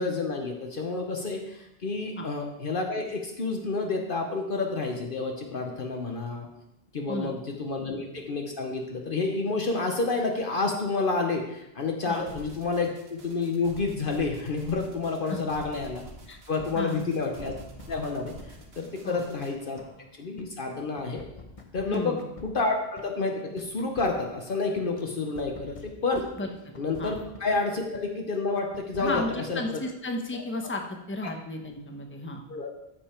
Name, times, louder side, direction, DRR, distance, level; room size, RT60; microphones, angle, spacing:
voice 1, 0.0-6.5 6.9-16.0 16.5-17.5 17.9-18.3 18.8-19.8 20.1-21.2 21.7-22.2 22.4-26.3 26.8-29.2 29.5-29.8 30.3-30.4 32.5-32.7, left 3 dB, 60° left, 2 dB, 1.1 m, -29 dB
sound 1, 12.1-19.5, right 2 dB, 85° right, 1.6 m, -48 dB
sound 2, 16.6-18.0 18.4-20.5 20.8-23.1 23.4-25.0 25.3-27.6 27.9-28.0 28.3-29.4, left 4 dB, 35° left, 1.0 m, -47 dB
voice 2, 16.7-17.1 19.0-19.2 21.9-22.2 26.4-26.5 27.0-27.1 29.0-32.4, left 2 dB, 10° left, 3 dB, 0.9 m, -33 dB
13.5 x 5.4 x 4.4 m, 0.90 s
omnidirectional pair, 1.0 m